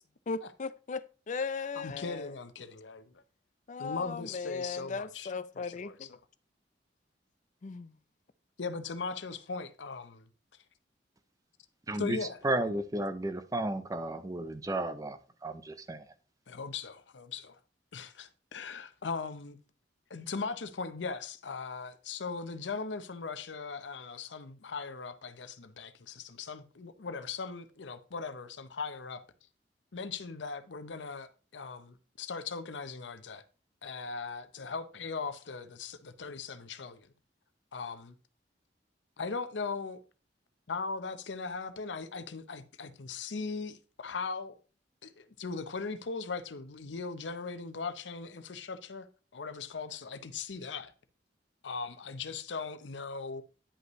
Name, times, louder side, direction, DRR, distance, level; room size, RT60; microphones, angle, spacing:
voice 1, 0.3-2.3 3.7-6.1 7.6-7.9, left 4 dB, 45° left, 0.5 m, -37 dB
voice 2, 1.6-3.2 3.8-6.2 8.6-10.6 12.0-12.4 12.7-12.8 16.5-17.6 17.9-19.6 20.1-29.2 29.9-33.4 33.8-37.1 37.7-38.1 39.2-40.0 40.7-44.6 45.0-50.9 51.6-53.4, left 4 dB, 85° left, 0.7 m, -39 dB
voice 3, 11.9-12.2 12.4-16.0, right 1 dB, 20° right, 0.5 m, -33 dB
9.8 x 5.3 x 3.1 m
head